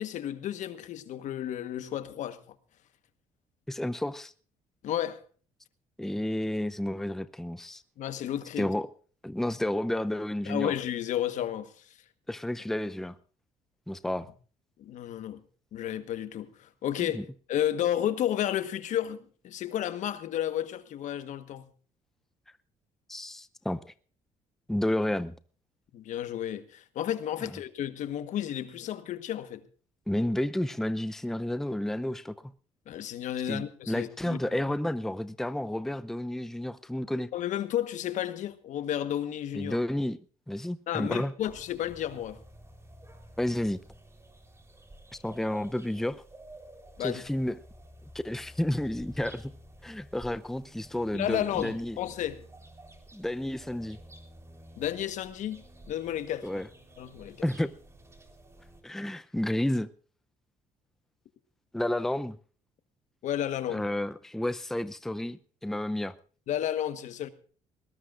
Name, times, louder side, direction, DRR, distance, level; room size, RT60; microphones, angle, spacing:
voice 1, 0.0-2.4 4.8-5.2 8.0-8.7 10.5-11.7 14.8-15.4 15.7-17.2 17.5-19.2 19.4-21.6 25.9-29.6 32.9-34.4 37.3-39.8 40.9-42.4 47.0-47.2 51.1-52.4 54.8-55.6 55.9-56.6 57.0-57.4 63.2-63.8 66.5-67.3, left 11 dB, 70° left, 1.3 m, -32 dB
voice 2, 3.7-4.3 6.0-7.8 8.6-8.9 9.2-10.7 12.3-13.2 13.9-14.3 17.0-17.2 23.1-23.9 24.7-25.3 30.1-32.4 33.5-37.3 39.5-40.2 40.5-41.3 43.4-43.8 45.2-46.2 47.0-47.5 48.1-49.5 49.8-52.0 53.1-54.0 56.4-56.7 57.4-57.7 58.8-59.9 61.7-62.4 63.7-66.1, left 1 dB, 5° left, 0.6 m, -31 dB
sound 1, 41.4-58.8, right 1 dB, 20° right, 3.7 m, -52 dB
20.5 x 19.0 x 2.5 m
cardioid pair, 95°, 13 cm